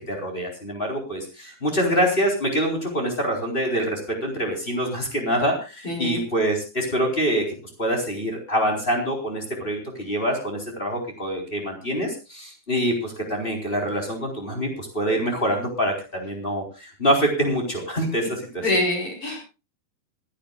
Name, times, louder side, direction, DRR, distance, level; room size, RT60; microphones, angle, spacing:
voice 1, 0.1-18.6, equal, 15° left, 1 dB, 4.0 m, -25 dB
voice 2, 5.8-6.2 18.2-18.3 18.6-19.4, left 1 dB, 40° left, 1 dB, 5.6 m, -25 dB
26.0 x 12.5 x 2.4 m, 0.30 s
omnidirectional pair, 4.2 m